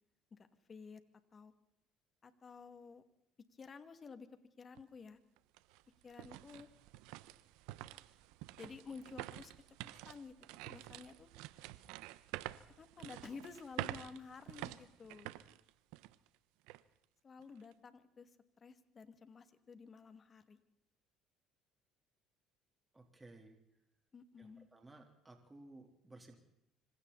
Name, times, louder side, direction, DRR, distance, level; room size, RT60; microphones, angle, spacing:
voice 1, 0.3-1.0 1.3-1.5 2.2-3.0 3.5-4.3 4.6-5.2 6.0-6.7 8.6-10.3 10.6-11.3 12.8-15.3 17.2-18.3 18.6-20.6 24.1-24.7, left 5 dB, 35° left, 9 dB, 2.4 m, -52 dB
sound 1, 4.8-4.9 5.4-16.3 16.7-16.8 17.4-17.7, right 16 dB, 85° right, 1.0 m, -48 dB
voice 2, 22.9-23.6 24.4-26.4, right 2 dB, 15° right, 3 dB, 3.7 m, -57 dB
26.5 x 26.0 x 4.2 m, 0.79 s
cardioid pair, 100°, 0 cm